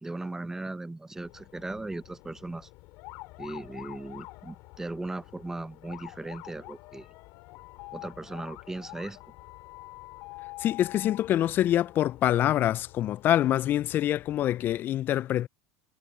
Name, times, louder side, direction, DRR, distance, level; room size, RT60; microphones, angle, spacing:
voice 1, 0.0-2.7 3.4-7.1 7.9-9.2, right 2 dB, 10° right, 0.8 m, -38 dB
sound 1, 1.2-14.8, left 23 dB, 65° left, 5.7 m, -47 dB
voice 2, 10.6-15.5, left 12 dB, 45° left, 0.3 m, -25 dB
supercardioid pair, 105°, 5 cm